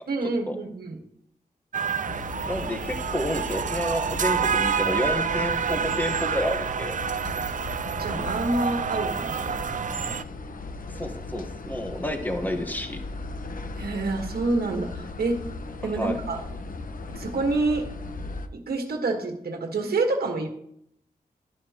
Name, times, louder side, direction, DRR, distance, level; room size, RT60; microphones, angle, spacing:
voice 1, 0.1-1.0 7.2-7.3 8.0-9.6 13.8-15.4 15.8-16.4 17.1-17.8 18.5-20.5, right 3 dB, 80° right, 3 dB, 1.4 m, -27 dB
sound 1, 1.7-10.2, right 7 dB, 55° right, 0.5 m, -28 dB
sound 2, 2.1-18.5, left 3 dB, 60° left, 0.9 m, -37 dB
voice 2, 2.5-7.0 10.9-13.0 15.9-16.2, left 1 dB, 10° left, 5 dB, 1.2 m, -30 dB
12.0 x 11.5 x 2.9 m, 0.72 s
wide cardioid pair, 85°, 16 cm